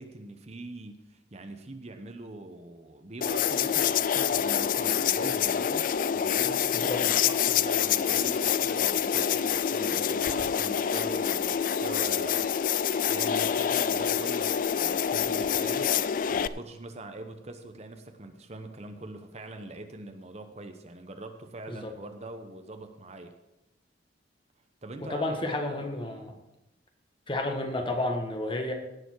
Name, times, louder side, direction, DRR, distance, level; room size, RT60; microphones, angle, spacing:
voice 1, 0.0-12.7 13.1-23.3 24.8-25.8 26.0-26.3, right 2 dB, 35° right, 6 dB, 0.9 m, -43 dB
sound 1, 3.2-16.5, left 8 dB, 45° left, 0.4 m, -26 dB
voice 2, 25.0-26.3 27.3-28.7, left 2 dB, 25° left, 3 dB, 1.6 m, -31 dB
17.0 x 7.0 x 4.6 m, 0.94 s
head